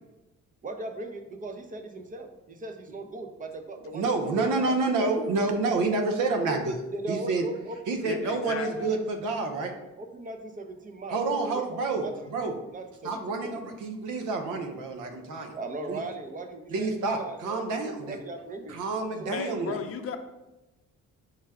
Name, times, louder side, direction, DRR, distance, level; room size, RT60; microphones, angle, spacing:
voice 1, 0.6-4.3 4.9-5.1 6.9-7.8 8.1-8.9 10.0-11.2 11.5-12.3 12.7-13.7 15.5-18.8 19.2-19.9, right 2 dB, 25° right, 5 dB, 0.6 m, -39 dB
voice 2, 3.9-7.5 7.9-9.7 11.1-12.5 13.0-15.6 15.9-16.0 16.7-18.2 18.7-19.8, right 3 dB, 80° right, 5 dB, 0.7 m, -28 dB
voice 3, 8.0-8.9 19.3-20.2, left 6 dB, 50° left, 7 dB, 0.5 m, -35 dB
4.9 x 2.2 x 4.7 m, 1.0 s
cardioid pair, 90°, 30 cm